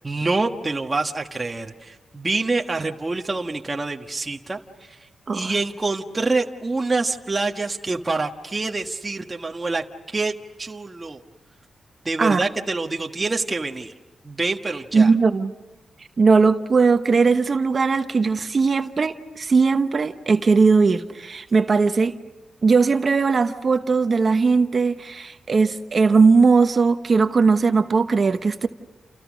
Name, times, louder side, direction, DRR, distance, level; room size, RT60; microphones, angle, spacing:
voice 1, 0.0-5.0 5.3-10.3 10.6-11.2 12.0-13.9 14.2-15.1 18.4-18.5, right 3 dB, 25° right, 1.4 m, -26 dB
voice 2, 14.9-15.5 16.2-22.1 22.6-28.7, right 4 dB, 45° right, 1.0 m, -19 dB
30.0 x 29.0 x 6.4 m
cardioid pair, 90°, 0 cm